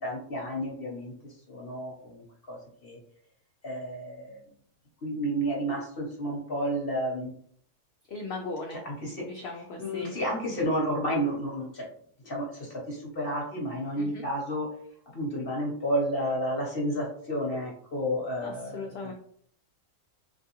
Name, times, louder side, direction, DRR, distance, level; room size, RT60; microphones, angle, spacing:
voice 1, 0.0-1.1 1.5-3.0 3.6-4.4 5.0-7.3 8.8-9.2 9.8-11.9 12.2-14.7 15.1-18.9, equal, 45° left, -3 dB, 1.0 m, -31 dB
voice 2, 8.1-8.8 9.2-10.1 14.0-14.2 18.4-19.1, left 3 dB, 70° left, 2 dB, 0.6 m, -38 dB
3.4 x 2.7 x 2.9 m, 0.63 s
omnidirectional pair, 1.6 m